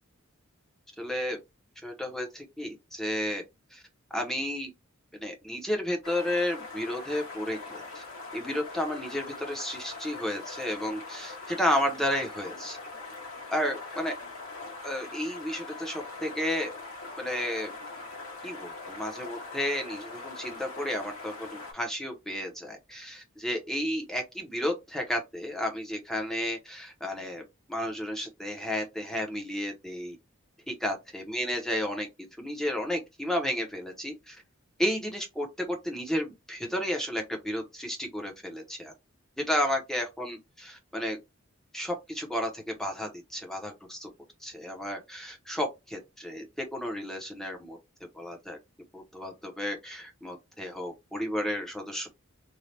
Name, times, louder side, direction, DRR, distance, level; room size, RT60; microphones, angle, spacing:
voice 1, 1.0-1.4 1.8-3.4 3.7-3.8 4.1-4.7 5.2-8.0 8.3-12.8 13.5-14.2 14.8-16.7 17.2-17.7 18.4-27.4 27.7-30.2 30.7-32.1 32.4-34.4 34.8-38.9 39.4-41.2 41.7-44.1 44.4-47.8 48.1-48.6 48.9-52.1, equal, ahead, 0.7 m, -32 dB
sound 1, 6.0-21.7, left 3 dB, 85° left, 1.5 m, -42 dB
3.2 x 2.3 x 2.7 m
head